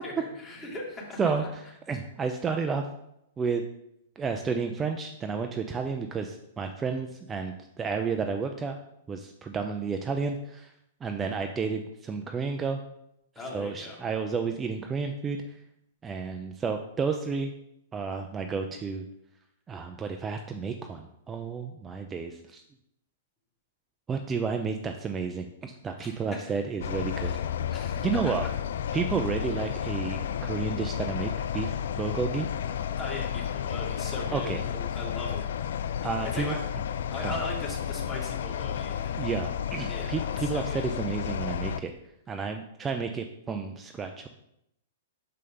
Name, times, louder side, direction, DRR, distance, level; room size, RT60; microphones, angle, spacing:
voice 1, 0.0-1.5 13.4-14.0 26.0-26.1 27.2-27.4 27.7-28.5 33.0-35.4 35.9-36.6 37.1-39.2 39.9-40.9, left 2 dB, 20° left, -3 dB, 2.3 m, -39 dB
voice 2, 1.2-1.6 1.9-2.9 3.4-3.6 4.2-8.8 9.1-10.7 11.0-12.8 13.5-15.4 16.0-17.5 17.9-19.0 19.7-22.6 24.1-27.3 28.0-28.4 28.9-32.5 34.3-34.6 36.0-36.6 37.2-37.4 39.2-41.9 42.3-44.3, right 5 dB, 20° right, 5 dB, 0.4 m, -31 dB
sound 1, 26.8-41.8, left 9 dB, 60° left, 0.3 m, -32 dB
6.5 x 5.2 x 3.8 m, 0.80 s
figure-of-eight pair, 105°, 0 cm